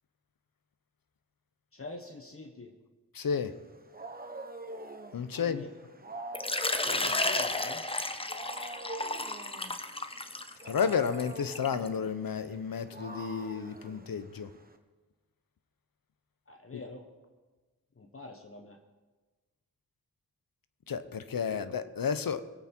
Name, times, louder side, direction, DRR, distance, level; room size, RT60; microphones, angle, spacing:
voice 1, 1.7-2.7 5.3-5.7 6.9-7.9 16.5-17.1 18.0-18.8 21.4-21.6, left 3 dB, 35° left, 4 dB, 1.2 m, -44 dB
voice 2, 3.1-3.5 5.1-5.7 10.6-14.5 16.7-16.8 20.9-22.4, left 6 dB, 65° left, 12 dB, 0.9 m, -32 dB
Wild animals, 3.5-14.8, right 2 dB, 25° right, 1.2 m, -46 dB
Water / Liquid, 6.3-11.9, left 2 dB, 15° left, 0.9 m, -33 dB
21.0 x 8.6 x 4.5 m, 1.3 s
wide cardioid pair, 70°, 37 cm